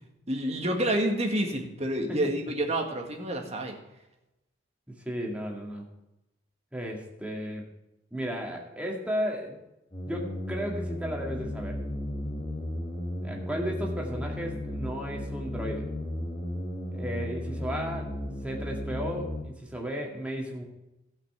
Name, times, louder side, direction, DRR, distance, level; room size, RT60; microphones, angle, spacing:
voice 1, 0.0-3.8, right 1 dB, 35° right, 2 dB, 1.8 m, -29 dB
voice 2, 4.9-5.9 6.7-7.6 8.1-9.6 10.1-11.8 13.2-15.9 16.9-18.1 18.4-20.6, equal, 5° right, -1 dB, 2.1 m, -34 dB
sound 1, 9.9-19.4, left 1 dB, 25° left, 1.7 m, -34 dB
16.0 x 5.9 x 5.7 m, 0.94 s
head